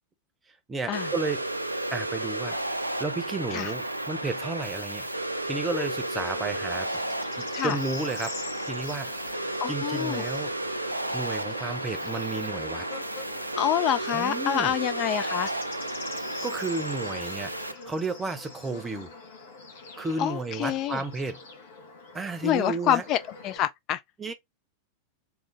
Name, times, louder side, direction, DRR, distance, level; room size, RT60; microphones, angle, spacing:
voice 1, 0.7-1.4 1.9-2.6 3.0-5.1 5.4-6.9 7.4-8.3 8.7-10.5 11.1-12.9 14.1-14.7 16.4-19.1 20.0-21.4 22.1-23.0 24.2-24.3, right 3 dB, 15° right, 0.8 m, -32 dB
sound 1, 0.9-17.7, right 1 dB, 85° right, 0.4 m, -32 dB
Bird / Insect, 6.2-23.6, left 3 dB, 60° left, 1.4 m, -44 dB
voice 2, 9.6-10.2 13.6-15.5 20.2-21.0 22.4-23.2 23.4-24.0, left 11 dB, 35° left, 0.4 m, -27 dB
3.8 x 2.9 x 3.7 m
figure-of-eight pair, 90°, 0 cm